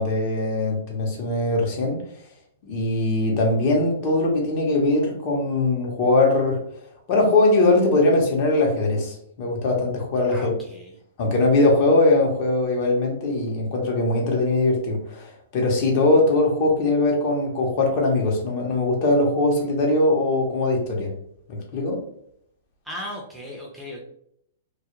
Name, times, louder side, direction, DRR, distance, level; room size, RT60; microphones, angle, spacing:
voice 1, 0.0-2.0 2.6-6.6 7.1-10.5 11.2-21.1 21.5-22.0, left 2 dB, 45° left, 0 dB, 0.8 m, -21 dB
voice 2, 10.3-10.9 22.9-24.0, left 1 dB, 5° right, -2 dB, 0.5 m, -36 dB
2.3 x 2.1 x 2.9 m, 0.69 s
hypercardioid pair, 145°, 0 cm